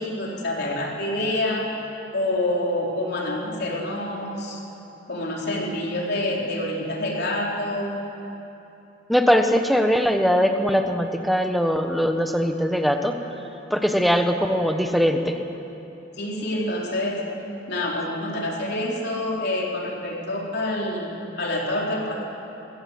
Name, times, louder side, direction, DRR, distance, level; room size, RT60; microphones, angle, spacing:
voice 1, 0.0-1.7 2.1-4.6 5.1-8.0 16.2-17.2 17.7-22.2, left 1 dB, 60° left, -2 dB, 3.6 m, -27 dB
voice 2, 9.1-13.1 13.7-15.4, equal, ahead, 5 dB, 1.1 m, -21 dB
23.0 x 16.0 x 7.9 m, 3.0 s
head